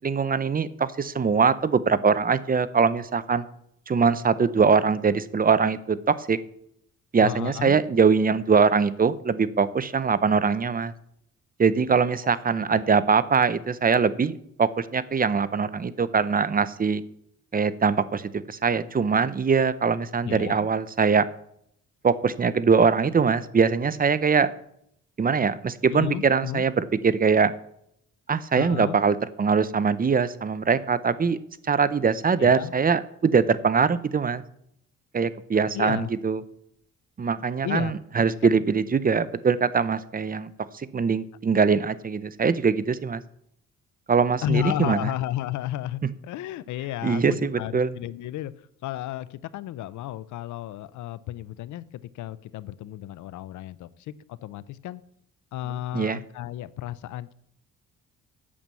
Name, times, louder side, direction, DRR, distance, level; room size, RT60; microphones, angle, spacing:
voice 1, 0.0-3.4 3.9-6.4 7.1-10.9 11.6-17.0 17.5-21.3 22.0-24.5 25.2-27.5 28.3-31.4 31.7-34.4 35.1-36.4 37.2-43.2 44.1-45.1 47.0-47.9 55.9-56.2, right 5 dB, 30° right, 16 dB, 0.7 m, -22 dB
voice 2, 7.2-7.8 12.7-12.8 20.2-20.7 25.9-26.6 28.6-29.0 32.4-32.7 35.7-36.1 37.6-38.5 44.4-48.5 48.8-55.0 55.5-57.3, left 13 dB, 75° left, 18 dB, 0.6 m, -33 dB
8.6 x 7.0 x 7.5 m, 0.71 s
cardioid pair, 90°, 30 cm